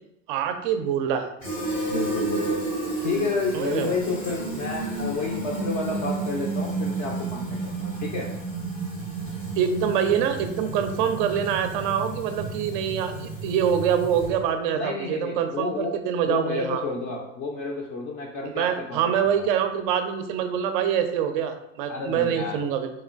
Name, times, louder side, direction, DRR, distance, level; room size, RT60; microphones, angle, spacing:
voice 1, 0.3-1.3 3.5-4.0 9.6-16.8 18.5-22.9, right 8 dB, 45° right, 7 dB, 0.4 m, -25 dB
Fill (with liquid), 1.4-14.5, right 3 dB, 80° left, 1.2 m, -31 dB
voice 2, 1.9-2.6 3.0-8.3 14.7-15.9 16.2-19.5 21.9-22.6, left 3 dB, 35° left, -1 dB, 0.5 m, -30 dB
3.6 x 3.1 x 2.3 m, 0.82 s
figure-of-eight pair, 75°, 38 cm